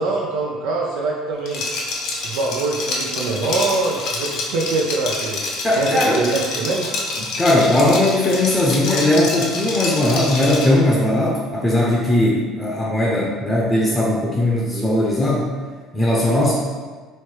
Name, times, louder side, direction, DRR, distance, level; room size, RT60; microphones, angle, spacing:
voice 1, 0.0-1.6 2.2-5.4 5.8-6.9, right 3 dB, 80° right, -3 dB, 0.6 m, -23 dB
Liquid, 1.5-10.8, left 3 dB, 65° left, 0.9 m, -27 dB
voice 2, 5.6-6.2 7.4-15.5 15.9-16.5, left 1 dB, 20° left, -4 dB, 0.7 m, -18 dB
3.1 x 3.1 x 4.6 m, 1.4 s
cardioid pair, 110°, 0 cm